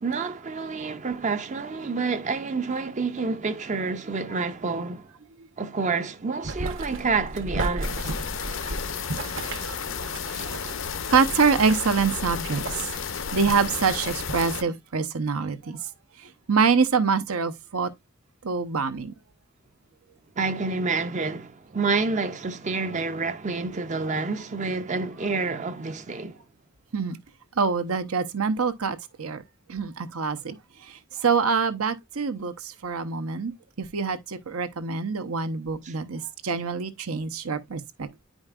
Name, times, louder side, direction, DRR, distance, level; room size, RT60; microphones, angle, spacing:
voice 1, 0.0-5.1 5.6-8.1 10.3-10.5 20.4-26.4 35.8-36.0, right 4 dB, 35° right, 0.5 m, -28 dB
Boiling, 6.4-14.4, right 2 dB, 60° right, 1.0 m, -35 dB
sound 1, 7.8-14.6, left 6 dB, 60° left, 0.6 m, -33 dB
voice 2, 11.1-12.9 13.3-15.8 16.5-17.9 18.4-19.2 26.9-27.2 27.6-29.4 29.7-30.6 31.2-33.5 33.8-38.2, right 5 dB, 85° right, 0.8 m, -25 dB
9.9 x 5.1 x 2.4 m
head